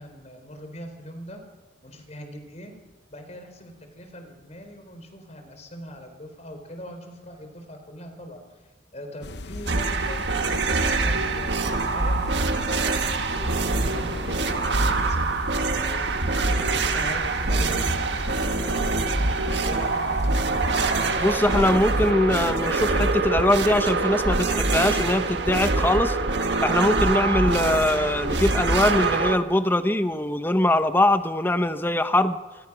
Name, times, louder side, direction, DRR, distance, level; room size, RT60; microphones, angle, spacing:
voice 1, 0.0-1.4 1.8-2.7 3.1-16.0 16.5-19.3 19.6-20.8, equal, 40° left, 6 dB, 4.1 m, -41 dB
sound 1, 9.2-22.1, left 2 dB, 65° left, 0.9 m, -38 dB
sound 2, 9.7-29.4, right 3 dB, 70° right, 1.6 m, -24 dB
voice 2, 21.2-26.2 26.6-32.4, left 1 dB, 10° left, 9 dB, 0.9 m, -22 dB
27.0 x 21.0 x 6.1 m, 1.2 s
head